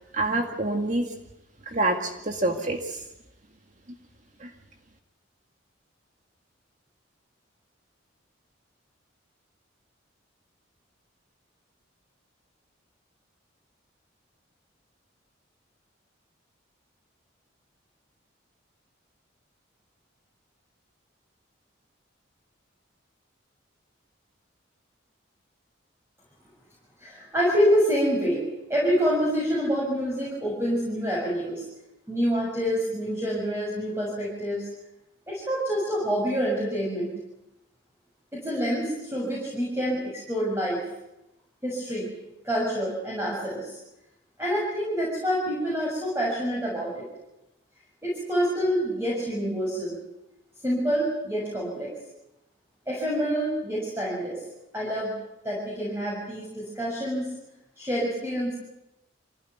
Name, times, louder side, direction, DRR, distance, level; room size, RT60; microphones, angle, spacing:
voice 1, 0.1-1.1 1.7-3.0 4.4-4.5, right 2 dB, 35° right, 4 dB, 2.0 m, -27 dB
voice 2, 27.0-31.6 32.1-34.6 35.3-37.1 38.3-40.8 41.6-42.1 42.4-43.8 44.4-47.1 48.0-49.9 50.6-51.9 52.9-54.4 54.7-55.1 55.4-57.3 57.8-58.5, equal, 10° right, -5 dB, 6.8 m, -27 dB
25.5 x 16.5 x 9.6 m, 0.89 s
head